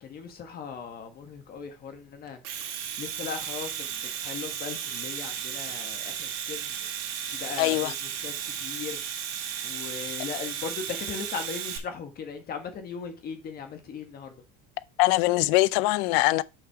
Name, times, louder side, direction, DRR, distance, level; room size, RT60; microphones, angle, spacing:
voice 1, 0.0-2.4 3.0-6.9 7.3-9.0 9.6-14.3, left 6 dB, 30° left, 1.5 m, -38 dB
Domestic sounds home sounds, 2.3-11.8, right 9 dB, 85° right, 2.0 m, -34 dB
voice 2, 7.6-7.9 15.0-16.4, left 19 dB, 75° left, 0.6 m, -22 dB
6.1 x 6.0 x 4.8 m
cardioid pair, 170°, 31 cm